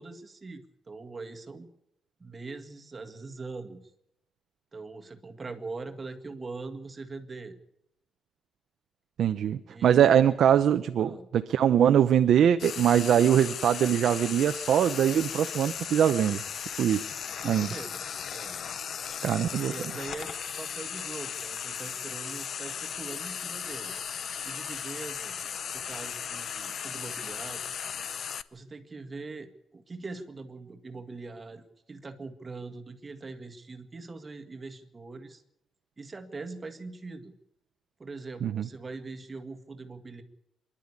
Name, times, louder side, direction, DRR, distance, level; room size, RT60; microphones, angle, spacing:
voice 1, 0.0-1.7 2.2-3.8 4.7-7.6 9.7-10.1 11.0-11.3 17.4-18.0 18.3-18.6 19.6-23.9 24.4-25.4 25.7-27.6 28.5-35.4 36.0-37.3 38.0-40.2, right 3 dB, 20° right, 5 dB, 1.8 m, -42 dB
voice 2, 9.2-16.4 16.8-17.1 17.4-17.7 19.2-19.7 38.4-38.7, right 9 dB, 55° right, 9 dB, 0.7 m, -22 dB
Frying (food), 12.6-28.4, left 7 dB, 45° left, 0.7 m, -36 dB
24.5 x 11.5 x 9.7 m, 0.81 s
cardioid pair, 180°, 0 cm